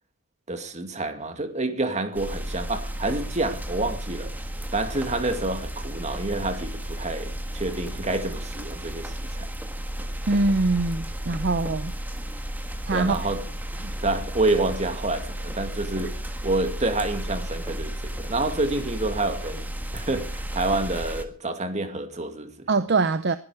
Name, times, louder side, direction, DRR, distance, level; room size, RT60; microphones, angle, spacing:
voice 1, 0.5-4.3 4.7-9.5 12.9-13.4 14.0-22.7, right 2 dB, 35° right, 2.2 m, -28 dB
sound 1, 2.1-21.2, right 1 dB, 10° right, 1.5 m, -33 dB
voice 2, 10.3-12.0 12.9-13.2 13.8-13.9 22.7-23.4, right 3 dB, 55° right, 0.7 m, -23 dB
21.5 x 11.5 x 4.9 m
head